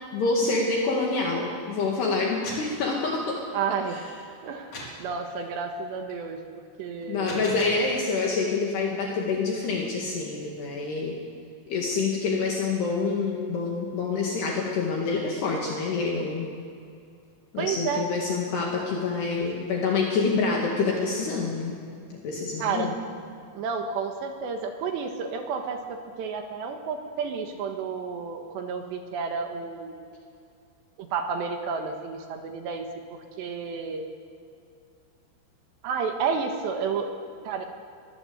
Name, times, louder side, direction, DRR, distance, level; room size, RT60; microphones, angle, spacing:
voice 1, 0.1-3.4 3.9-4.0 7.1-11.2 11.7-16.5 17.5-21.7 22.1-22.9, left 4 dB, 60° left, -1 dB, 3.9 m, -27 dB
sound 1, 2.2-2.8 4.7-5.0 7.0-7.9, left 1 dB, 30° left, 4.5 m, -38 dB
voice 2, 3.5-4.0 4.4-6.4 6.8-7.6 17.6-18.0 22.6-22.9 23.6-30.1 31.0-32.9 33.4-34.1 35.8-37.1 37.5-37.6, right 5 dB, 70° right, 4 dB, 3.3 m, -31 dB
22.5 x 18.5 x 8.1 m, 2.4 s
omnidirectional pair, 5.7 m